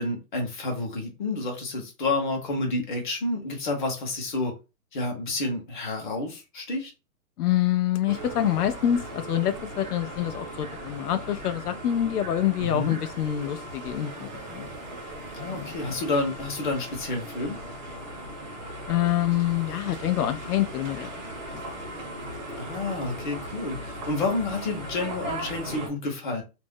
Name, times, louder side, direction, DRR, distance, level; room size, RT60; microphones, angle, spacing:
voice 1, 0.0-4.5 4.9-6.9 12.6-13.0 15.3-17.6 22.6-26.4, left 2 dB, 30° left, 0.9 m, -29 dB
voice 2, 7.4-14.7 15.4-15.7 18.9-21.1 21.5-21.6, left 11 dB, 80° left, 0.5 m, -26 dB
sound 1, 8.1-25.9, right 1 dB, 30° right, 0.8 m, -38 dB
2.5 x 2.0 x 3.5 m
hypercardioid pair, 170°, 46 cm